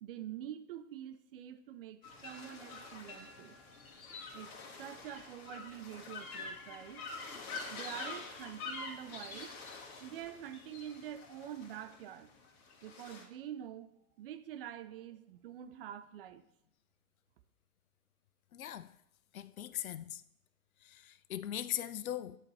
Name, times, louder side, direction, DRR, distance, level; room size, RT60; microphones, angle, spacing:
voice 1, 0.0-3.6 4.3-4.5 4.8-7.0 7.7-9.5 10.0-12.3 12.8-13.9 14.2-16.4, right 10 dB, 40° right, 0.5 m, -46 dB
sound 1, 2.0-13.2, left 3 dB, 40° left, 1.7 m, -46 dB
voice 2, 18.5-18.9 19.3-20.2 20.8-22.4, left 11 dB, 70° left, 0.5 m, -40 dB
10.0 x 4.2 x 3.2 m
figure-of-eight pair, 110°, 43 cm